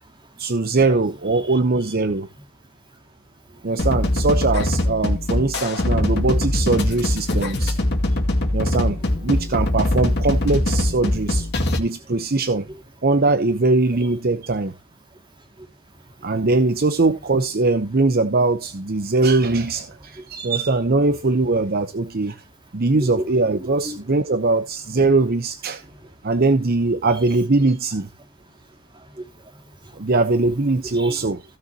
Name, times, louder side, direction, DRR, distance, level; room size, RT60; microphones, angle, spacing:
voice 1, 0.4-2.3 3.6-7.8 8.5-11.5 11.8-12.7 13.0-14.7 16.2-22.4 22.7-25.8 26.2-28.1 30.0-31.4, right 3 dB, 45° right, 0.8 m, -21 dB
sound 1, 3.8-11.8, left 1 dB, 55° left, 2.1 m, -22 dB
voice 2, 23.0-23.3 23.6-24.0 28.9-30.0 30.9-31.2, right 1 dB, 20° right, 2.2 m, -36 dB
16.0 x 6.7 x 2.8 m
head